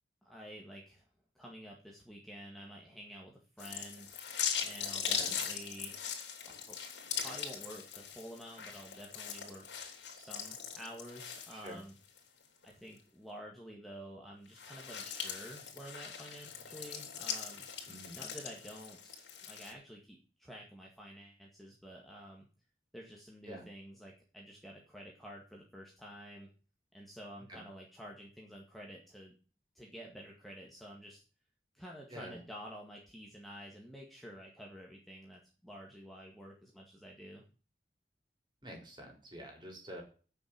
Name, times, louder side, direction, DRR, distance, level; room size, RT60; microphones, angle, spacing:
voice 1, 0.2-1.0 1.3-4.1 4.6-6.0 6.5-6.8 7.2-11.9 12.6-17.7 18.1-22.5 22.9-26.5 26.9-29.3 29.7-31.2 31.7-37.4, equal, ahead, -2 dB, 1.8 m, -50 dB
sound 1, 3.6-12.2 12.6-12.7 14.5-19.7, left 7 dB, 85° left, 3.3 m, -40 dB
voice 2, 17.9-18.2 23.5-23.6 27.5-27.6 32.1-32.4 38.6-40.0, equal, 25° right, 1 dB, 4.0 m, -47 dB
8.8 x 6.7 x 8.6 m, 0.36 s
head